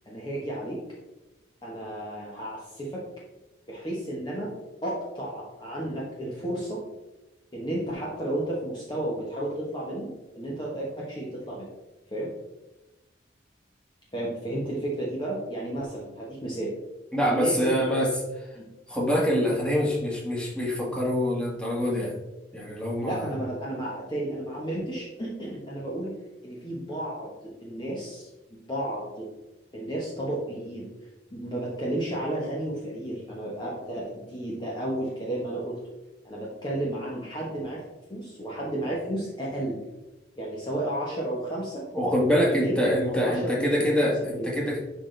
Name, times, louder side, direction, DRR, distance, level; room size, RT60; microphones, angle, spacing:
voice 1, 0.1-0.8 1.6-3.0 3.7-4.5 4.8-6.8 7.5-10.1 10.3-11.7 12.1-12.3 14.1-16.7 17.2-17.8 18.6-18.7 23.0-26.1 26.4-28.3 28.7-29.3 29.7-30.9 31.3-35.8 36.2-37.8 38.1-39.8 40.4-41.8 42.5-42.8 43.1-44.5, right 1 dB, 25° left, -5 dB, 1.2 m, -32 dB
voice 2, 17.1-18.5 18.9-22.1 22.5-23.3 41.9-44.8, equal, 5° left, -4 dB, 1.7 m, -25 dB
10.5 x 4.0 x 3.3 m, 1.0 s
head